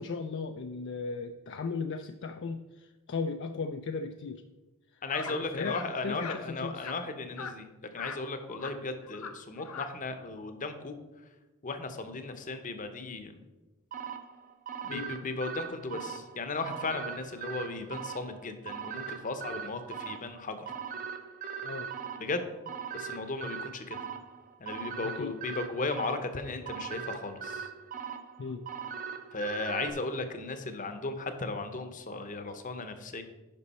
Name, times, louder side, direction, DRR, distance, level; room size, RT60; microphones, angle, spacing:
voice 1, 0.0-4.4 4.9-5.8 6.0-6.9 14.9-15.1 21.6-21.9 25.0-25.3 28.4-28.6, left 4 dB, 55° left, 6 dB, 0.4 m, -37 dB
voice 2, 5.0-10.9 11.6-13.4 14.8-20.7 22.2-22.4 22.9-24.0 24.6-27.7 29.3-33.2, left 3 dB, 35° left, 8 dB, 0.8 m, -36 dB
sound 1, 5.1-5.3 5.6-5.9 6.2-6.4 6.8-6.9 7.4-7.5 7.9-8.2 8.5-8.7 9.0-9.3 9.6-9.9, left 5 dB, 70° left, 0.8 m, -40 dB
sound 2, 13.9-29.9, right 7 dB, 35° right, 0.7 m, -40 dB
11.0 x 5.2 x 4.2 m, 1.1 s
head